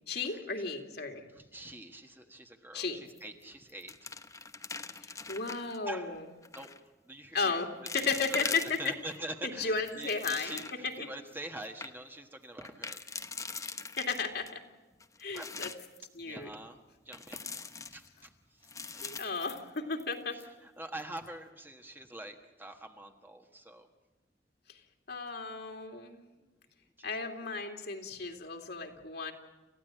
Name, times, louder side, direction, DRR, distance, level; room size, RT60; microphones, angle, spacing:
voice 1, 0.1-1.2 2.7-3.0 5.0-6.2 7.3-8.8 9.6-10.6 11.0-11.1 14.0-14.6 15.2-15.7 16.1-16.5 19.0-20.4 24.7-24.8 25.1-26.2 27.0-29.3, left 4 dB, 65° left, 3 dB, 2.7 m, -34 dB
voice 2, 1.3-4.3 5.8-6.2 6.5-6.8 7.0-7.6 7.9-13.0 15.3-15.6 16.2-16.8 17.0-19.4 20.3-23.9 26.4-26.5 27.0-27.5, right 1 dB, 10° right, 4 dB, 1.4 m, -45 dB
sound 1, 3.1-3.4 3.7-5.8 6.4-6.8 7.4-7.5 7.9-9.2 9.6-10.9 11.3-11.4 11.6-11.9 12.6-14.5 15.0-16.0 17.1-18.3 18.6-20.1 20.4-20.5 21.0-21.3, left 4 dB, 20° left, 0.9 m, -42 dB
28.0 x 15.5 x 9.1 m, 1.2 s
head